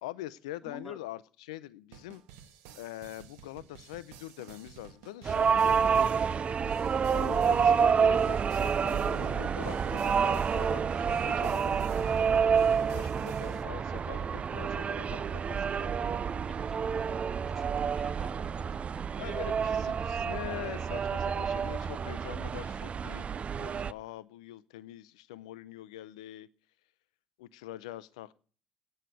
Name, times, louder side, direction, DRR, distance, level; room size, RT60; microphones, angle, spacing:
voice 1, 0.0-2.2 2.8-6.2 7.1-16.3 19.2-23.3 23.6-26.5 27.4-28.3, left 15 dB, 80° left, 0.6 m, -44 dB
voice 2, 0.6-1.0 6.9-7.1 15.7-16.1 16.5-16.9 17.4-19.3, left 1 dB, ahead, 1.8 m, -51 dB
sound 1, 1.9-13.6, right 8 dB, 75° right, 1.3 m, -53 dB
sound 2, 5.2-23.9, right 6 dB, 35° right, 0.4 m, -28 dB
9.5 x 6.5 x 8.3 m
hypercardioid pair, 60°, 3 cm